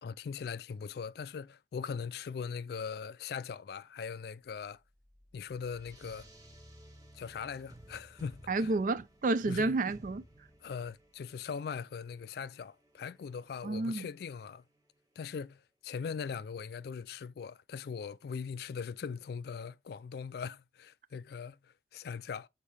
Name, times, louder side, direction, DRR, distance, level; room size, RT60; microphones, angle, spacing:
voice 1, 0.0-4.8 5.3-6.3 7.1-8.7 9.5-9.8 10.6-14.6 15.2-22.5, left 6 dB, 55° left, 0.3 m, -40 dB
sound 1, 4.8-15.4, right 1 dB, 20° right, 1.4 m, -57 dB
voice 2, 8.5-10.2 13.6-14.1, right 3 dB, 45° right, 0.4 m, -30 dB
7.3 x 4.6 x 3.3 m
head